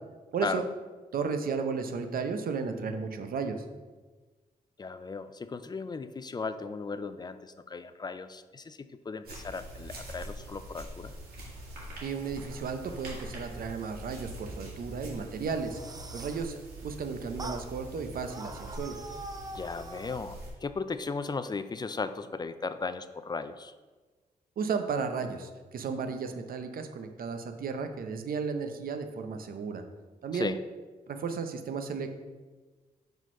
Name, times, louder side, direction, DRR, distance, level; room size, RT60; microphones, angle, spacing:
voice 1, 0.3-0.6 1.1-3.7 12.0-15.8 16.1-16.5 16.8-19.0 24.6-29.8 30.2-30.5 31.1-32.1, right 5 dB, 70° right, 7 dB, 0.6 m, -34 dB
voice 2, 4.8-11.1 19.5-23.7 30.3-30.6, left 4 dB, 25° left, 12 dB, 0.4 m, -36 dB
sound 1, 9.2-20.5, right 1 dB, 90° right, 1.8 m, -44 dB
sound 2, 15.5-16.5 17.4-17.7 18.3-20.2, right 2 dB, 25° right, 0.5 m, -43 dB
4.9 x 3.9 x 5.3 m, 1.3 s
cardioid pair, 75°, 16 cm